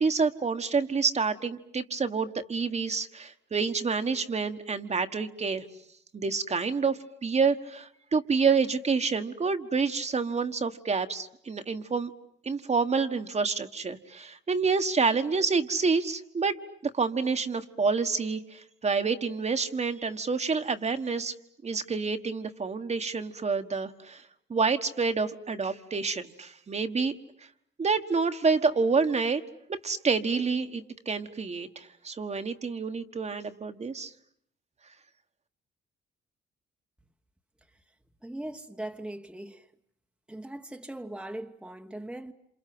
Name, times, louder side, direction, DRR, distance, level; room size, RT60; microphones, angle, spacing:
voice 1, 0.0-5.7 6.1-12.1 12.4-16.5 16.9-21.3 21.6-24.2 24.5-27.1 27.8-29.4 29.7-34.1, right 4 dB, 35° right, 1.6 m, -28 dB
voice 2, 38.2-39.7 40.3-42.3, right 1 dB, 5° right, 1.3 m, -39 dB
28.0 x 27.0 x 7.8 m
cardioid pair, 90°, 20 cm